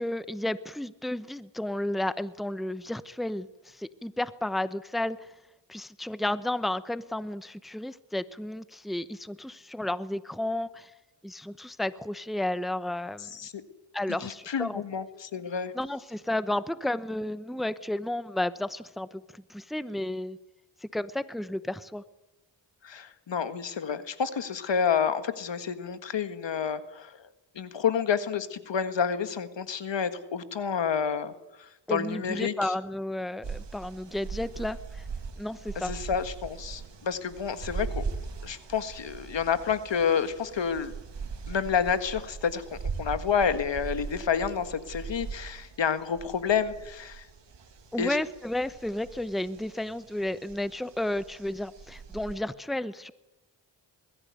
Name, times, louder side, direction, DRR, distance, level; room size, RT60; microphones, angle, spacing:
voice 1, 0.0-5.2 5.7-10.9 11.2-13.3 13.9-14.8 15.7-20.4 20.9-22.0 31.9-35.0 35.4-35.9 47.9-53.1, left 1 dB, ahead, 15 dB, 0.9 m, -32 dB
voice 2, 14.2-15.7 22.8-27.3 27.6-31.3 31.6-32.7 35.8-38.0 38.4-40.9 41.5-47.3 48.0-48.2, left 7 dB, 70° left, 11 dB, 1.8 m, -29 dB
sound 1, 33.4-52.4, right 5 dB, 70° right, 2.8 m, -40 dB
21.5 x 14.0 x 9.4 m, 0.93 s
cardioid pair, 55°, 45 cm